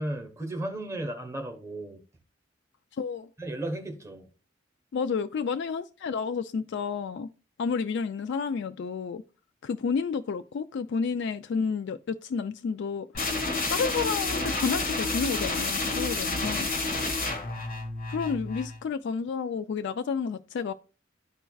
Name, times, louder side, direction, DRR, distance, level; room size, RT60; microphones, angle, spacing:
voice 1, 0.0-2.0 3.4-4.2 17.0-17.2, right 1 dB, 15° right, 1.0 m, -35 dB
voice 2, 3.0-3.3 4.9-7.3 7.6-9.2 9.6-13.2 13.7-16.7 18.1-20.7, left 5 dB, 60° left, 0.3 m, -30 dB
sound 1, 13.1-18.8, left 3 dB, 45° left, 1.5 m, -30 dB
13.0 x 4.5 x 2.3 m
head